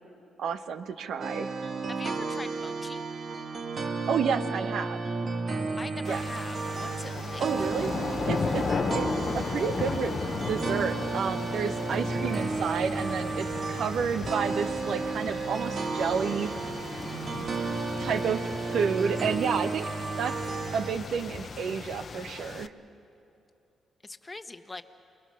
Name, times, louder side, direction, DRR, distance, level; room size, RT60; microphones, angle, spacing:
voice 1, 0.4-1.5 4.1-5.0 6.0-6.2 7.4-9.1 9.3-10.2 10.5-16.5 17.5-17.6 18.0-20.4 20.7-22.7, right 6 dB, 70° right, 10 dB, 1.0 m, -30 dB
sound 1, 1.2-21.0, right 3 dB, 50° right, 1.5 m, -33 dB
voice 2, 1.9-3.1 5.8-7.7 17.3-18.0 24.0-24.8, left 3 dB, 25° left, 8 dB, 1.2 m, -43 dB
sound 2, 6.0-22.7, left 5 dB, 50° left, 0.7 m, -36 dB
28.0 x 21.0 x 6.4 m, 2.7 s
supercardioid pair, 60°, 0 cm